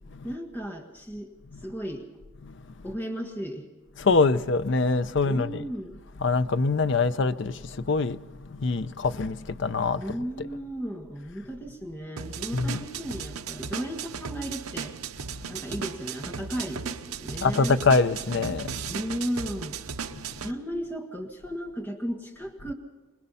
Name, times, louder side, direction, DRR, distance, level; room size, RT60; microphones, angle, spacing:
voice 1, 0.2-1.3 1.6-2.1 2.8-3.7 5.2-6.0 10.0-14.9 15.5-17.8 18.9-19.8 20.4-22.7, equal, 10° left, 1.6 m, -35 dB
voice 2, 4.0-5.6 6.2-10.0 12.5-12.8 17.4-18.9 20.2-20.3, left 4 dB, 55° left, 0.6 m, -24 dB
sound 1, 12.2-20.5, right 6 dB, 90° right, 0.8 m, -36 dB
24.0 x 20.5 x 5.6 m
head